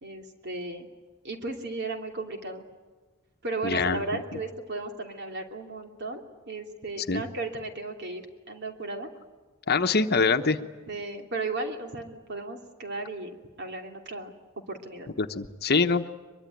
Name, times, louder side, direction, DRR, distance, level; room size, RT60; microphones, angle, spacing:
voice 1, 0.0-0.9 1.2-2.6 3.4-9.1 10.6-13.3 13.6-14.3 14.7-15.1, right 2 dB, 55° right, 3 dB, 2.9 m, -35 dB
voice 2, 3.6-4.0 7.1-7.2 9.7-10.6 15.2-16.1, left 4 dB, 50° left, 8 dB, 1.1 m, -24 dB
23.0 x 22.5 x 9.3 m, 1.4 s
head